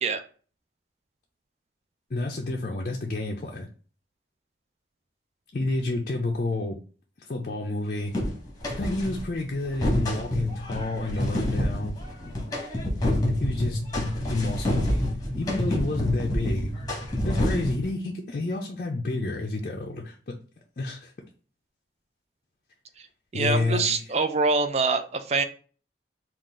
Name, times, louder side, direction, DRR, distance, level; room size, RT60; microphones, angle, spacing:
voice 1, 2.1-3.7 5.5-6.8 7.3-8.1 8.8-12.0 13.1-14.9 15.4-16.7 17.2-20.3 20.8-21.1 23.3-24.0, left 2 dB, 45° left, 0 dB, 0.5 m, -30 dB
sound 1, 8.1-9.2 9.6-17.9, left 1 dB, 20° left, 1.0 m, -27 dB
voice 2, 23.3-25.4, right 3 dB, 35° right, 9 dB, 0.4 m, -24 dB
3.8 x 2.4 x 3.6 m, 0.40 s
head